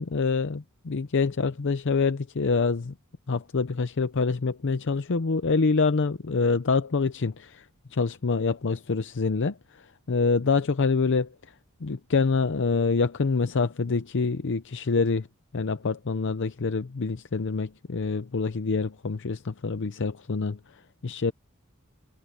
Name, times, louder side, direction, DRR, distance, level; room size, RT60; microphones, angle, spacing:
voice 1, 0.0-2.9 3.3-11.5 11.8-15.3 15.5-21.3, left 4 dB, 60° left, 0.6 m, -26 dB
head